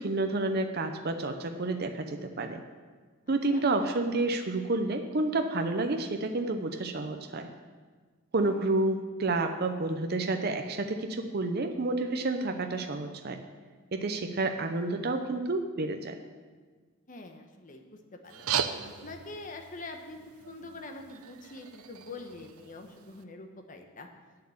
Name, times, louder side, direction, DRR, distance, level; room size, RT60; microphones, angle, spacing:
voice 1, 0.0-2.6 3.3-7.5 8.3-13.4 13.9-16.2, right 2 dB, 50° right, 5 dB, 0.6 m, -30 dB
voice 2, 17.1-18.5 19.0-24.1, left 2 dB, 40° left, 4 dB, 1.0 m, -44 dB
sound 1, 18.2-23.2, right 8 dB, 90° right, 0.6 m, -38 dB
8.7 x 7.7 x 7.1 m, 1.5 s
head